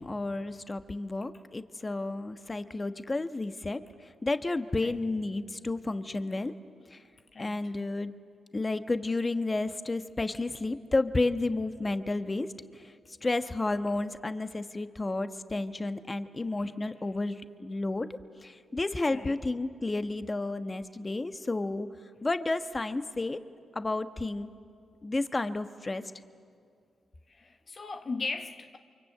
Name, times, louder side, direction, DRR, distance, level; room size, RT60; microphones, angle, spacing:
voice 1, 0.0-3.8 4.2-6.5 6.9-7.0 7.4-8.1 8.5-12.5 13.2-17.3 17.6-18.1 18.4-21.9 22.2-23.4 23.7-24.5 25.0-26.0, left 2 dB, 30° left, 1.2 m, -31 dB
voice 2, 7.3-7.7 16.6-16.8 19.1-19.4 27.3-28.8, left 3 dB, 50° left, 1.1 m, -38 dB
28.0 x 24.0 x 8.6 m
supercardioid pair, 50°, 0 cm